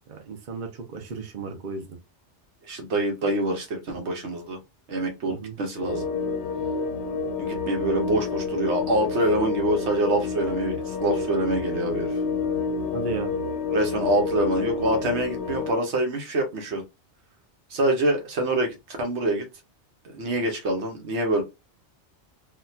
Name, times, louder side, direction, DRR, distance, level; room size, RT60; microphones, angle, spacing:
voice 1, 0.1-1.9 5.3-5.6 12.9-13.3, right 4 dB, 50° right, 4 dB, 0.8 m, -34 dB
voice 2, 2.6-4.6 4.9-6.1 7.4-12.2 13.7-16.8 17.7-19.5 20.0-21.4, right 1 dB, 70° right, 4 dB, 1.2 m, -25 dB
sound 1, 5.8-15.7, left 4 dB, 75° left, 0.9 m, -29 dB
3.9 x 2.3 x 2.7 m, 0.24 s
omnidirectional pair, 1.2 m